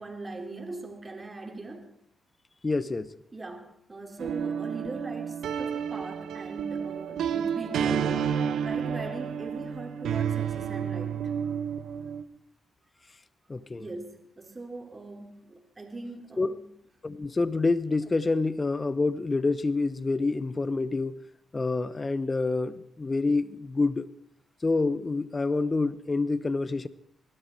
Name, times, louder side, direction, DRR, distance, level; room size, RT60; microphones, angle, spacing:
voice 1, 0.0-2.0 3.3-11.5 13.7-16.7, right 2 dB, 30° right, 3.5 m, -41 dB
voice 2, 2.6-3.1 13.5-13.8 16.4-16.5 17.0-21.2 21.5-24.1 24.6-26.9, left 3 dB, 30° left, 0.8 m, -27 dB
sound 1, 4.2-12.2, right 7 dB, 80° right, 1.2 m, -30 dB
24.5 x 12.5 x 4.6 m
cardioid pair, 60°, 0 cm